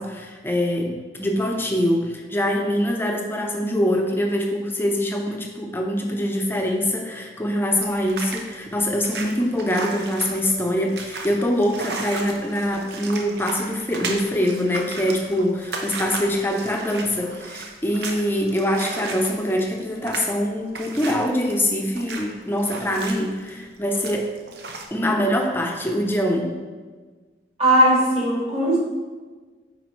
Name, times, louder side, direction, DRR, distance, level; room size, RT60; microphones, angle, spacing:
voice 1, 0.0-24.3 24.9-26.6, equal, 15° left, 2 dB, 0.7 m, -24 dB
sound 1, 7.8-24.9, right 3 dB, 65° right, 0.8 m, -35 dB
voice 2, 27.6-28.8, right 1 dB, 35° right, -5 dB, 1.9 m, -18 dB
9.3 x 4.1 x 3.1 m, 1.4 s
head